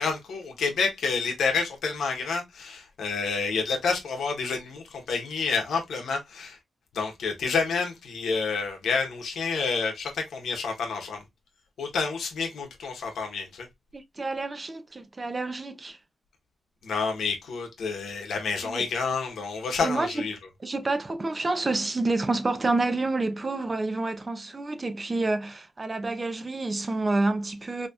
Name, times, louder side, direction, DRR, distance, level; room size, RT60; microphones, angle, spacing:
voice 1, 0.0-6.6 6.9-11.2 11.8-13.7 16.8-20.3, left 4 dB, 85° left, 1.1 m, -29 dB
voice 2, 13.9-16.0 18.6-18.8 19.8-20.2 20.6-27.9, right 2 dB, 25° right, 0.6 m, -28 dB
4.2 x 3.0 x 2.4 m
wide cardioid pair, 125°, 0 cm